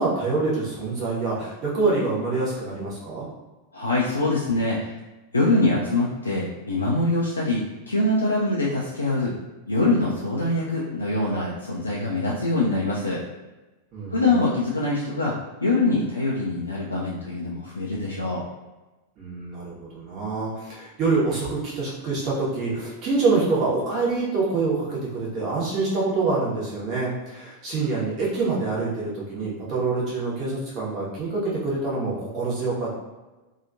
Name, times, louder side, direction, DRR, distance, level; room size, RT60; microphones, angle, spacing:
voice 1, 0.0-3.3 13.9-14.3 19.2-32.9, right 3 dB, 35° right, -6 dB, 1.1 m, -26 dB
voice 2, 3.7-4.9 5.3-7.6 7.9-9.3 9.7-13.2 14.1-18.5, left 2 dB, 80° left, -5 dB, 0.4 m, -24 dB
2.8 x 2.4 x 2.6 m, 1.1 s
figure-of-eight pair, 90°, 0 cm